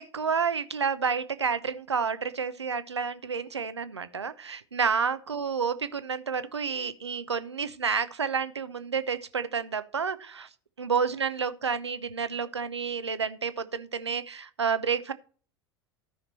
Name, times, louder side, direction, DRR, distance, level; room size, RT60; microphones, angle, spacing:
voice 1, 0.0-10.5 10.8-15.1, right 6 dB, 85° right, 0.8 m, -30 dB
13.5 x 5.9 x 4.1 m
figure-of-eight pair, 80°, 14 cm